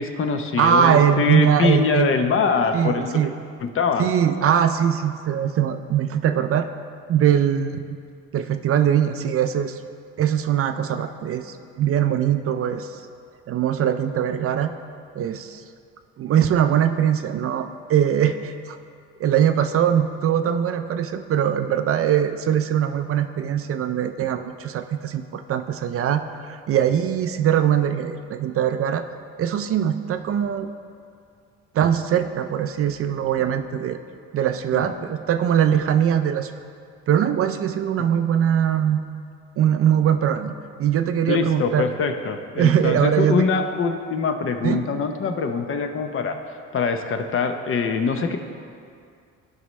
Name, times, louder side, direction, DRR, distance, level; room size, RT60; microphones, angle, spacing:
voice 1, 0.0-3.2 3.6-4.1 34.7-34.9 41.3-46.4 46.7-48.4, left 5 dB, 45° left, 6 dB, 0.7 m, -23 dB
voice 2, 0.6-2.1 2.7-3.3 4.0-6.7 7.1-8.0 8.3-9.8 10.2-13.0 13.5-14.7 15.2-15.6 16.2-18.8 19.2-29.1 29.4-30.7 31.7-34.0 34.3-36.5 37.1-39.0 39.6-40.5 40.8-41.8 42.6-43.5 44.6-44.9, right 9 dB, 50° right, 9 dB, 0.4 m, -21 dB
12.5 x 5.3 x 3.1 m, 2.3 s
cardioid pair, 100°, 30 cm